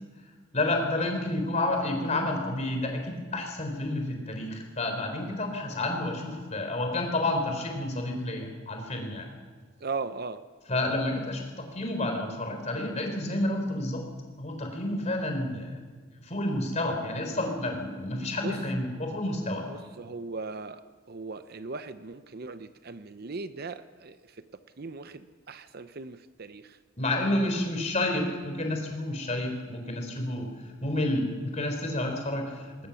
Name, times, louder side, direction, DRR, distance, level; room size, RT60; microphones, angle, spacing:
voice 1, 0.5-9.3 10.7-14.1 14.4-15.8 16.2-19.7 27.0-30.5 30.8-32.9, left 1 dB, 30° left, 4 dB, 3.7 m, -30 dB
voice 2, 9.8-10.4 18.4-18.6 19.6-20.8 21.1-24.2 24.8-26.8, right 4 dB, 45° right, 11 dB, 0.7 m, -38 dB
20.5 x 19.0 x 7.0 m, 1.5 s
head